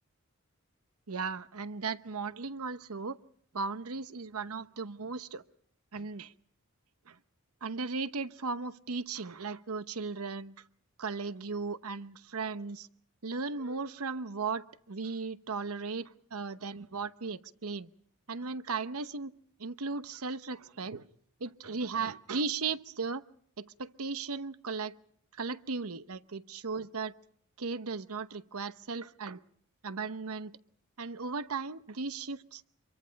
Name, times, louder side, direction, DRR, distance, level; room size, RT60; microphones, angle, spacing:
voice 1, 1.1-3.2 3.5-5.5 5.9-6.3 7.1-7.2 7.6-10.6 11.0-12.9 13.2-17.9 18.3-19.3 19.6-21.1 21.4-23.2 23.6-24.9 25.3-27.1 27.6-29.4 29.8-30.6 31.0-32.6, right 4 dB, 85° right, 1.0 m, -36 dB
27.0 x 23.0 x 5.3 m
head